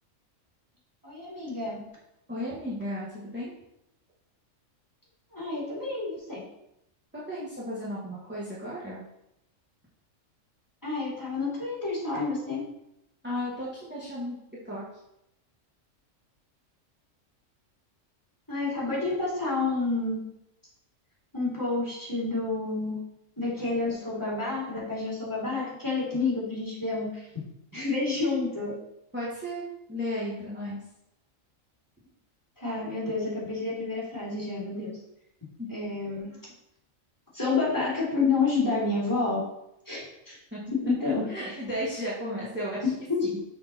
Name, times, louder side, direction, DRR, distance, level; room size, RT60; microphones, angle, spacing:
voice 1, 1.0-1.8 5.3-6.4 10.8-12.6 18.5-20.2 21.3-23.0 23.4-27.4 27.7-28.7 32.6-35.0 35.7-36.5 37.3-39.4 39.8-40.4 40.7-41.6 42.8-43.4, left 3 dB, 15° left, -7 dB, 3.1 m, -29 dB
voice 2, 2.3-3.5 7.1-9.0 13.2-14.4 14.6-14.8 29.1-30.8 35.6-35.7 40.5-42.8 43.2-43.4, equal, 10° right, -9 dB, 1.6 m, -34 dB
6.7 x 6.0 x 4.2 m, 0.84 s
omnidirectional pair, 1.4 m